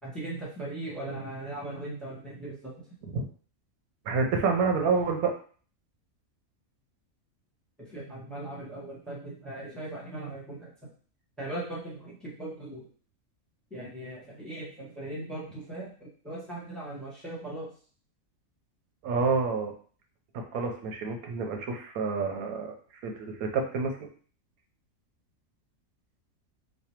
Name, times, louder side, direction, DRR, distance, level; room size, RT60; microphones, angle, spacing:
voice 1, 0.0-2.7 7.8-10.7 11.4-12.9 13.7-17.7, right 2 dB, ahead, -5 dB, 1.1 m, -39 dB
voice 2, 4.1-5.3 19.0-19.7 20.3-22.7 23.0-24.1, right 4 dB, 85° right, 3 dB, 1.1 m, -28 dB
3.2 x 2.2 x 4.3 m, 0.43 s
omnidirectional pair, 1.5 m